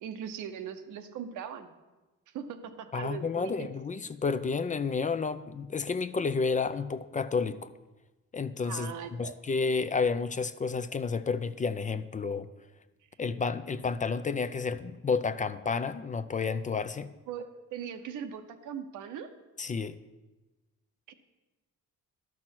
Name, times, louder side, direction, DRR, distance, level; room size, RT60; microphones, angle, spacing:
voice 1, 0.0-1.7 2.3-3.7 8.6-9.4 17.3-19.4 21.1-21.2, right 8 dB, 90° right, 7 dB, 0.9 m, -40 dB
voice 2, 2.9-7.7 8.3-12.5 13.2-17.1 19.6-20.0, left 5 dB, 25° left, 12 dB, 0.5 m, -31 dB
12.0 x 6.0 x 6.1 m, 1.1 s
cardioid pair, 90°, 30 cm